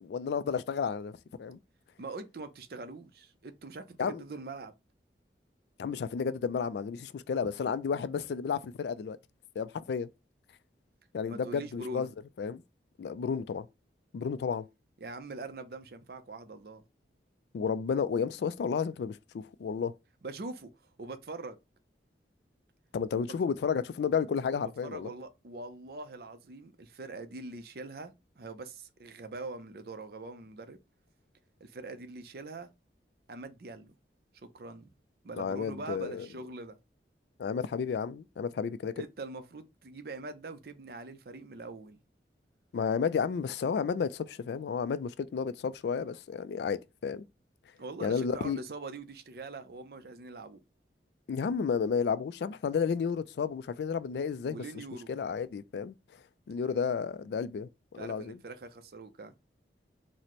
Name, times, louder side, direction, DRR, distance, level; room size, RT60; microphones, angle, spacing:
voice 1, 0.0-1.6 4.0-4.2 5.8-9.2 9.6-10.1 11.1-12.1 12.4-12.6 13.0-13.7 14.1-14.6 17.5-19.9 22.9-25.1 35.4-36.3 37.4-38.9 42.7-47.2 48.0-48.6 51.3-54.6 55.1-55.9 56.5-58.4, left 6 dB, 70° left, 0.3 m, -32 dB
voice 2, 2.0-4.7 11.3-12.1 15.0-16.8 20.2-20.7 21.0-21.6 24.8-30.8 31.6-32.7 33.3-33.9 34.4-34.9 35.2-36.8 39.0-42.0 47.8-50.6 54.4-55.1 58.0-59.3, right 3 dB, 55° right, 0.5 m, -43 dB
4.1 x 2.1 x 3.0 m
head